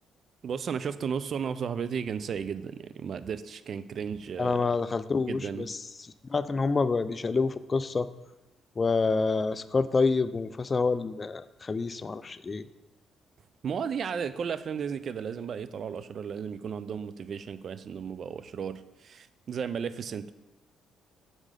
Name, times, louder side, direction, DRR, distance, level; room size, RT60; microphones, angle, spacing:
voice 1, 0.4-4.6 5.3-5.7 13.6-20.3, right 7 dB, 55° right, 14 dB, 0.3 m, -34 dB
voice 2, 4.4-5.8 6.3-8.1 8.8-12.6, left 4 dB, 30° left, 14 dB, 0.3 m, -27 dB
6.2 x 3.7 x 5.0 m, 0.98 s
cardioid pair, 90°, 0 cm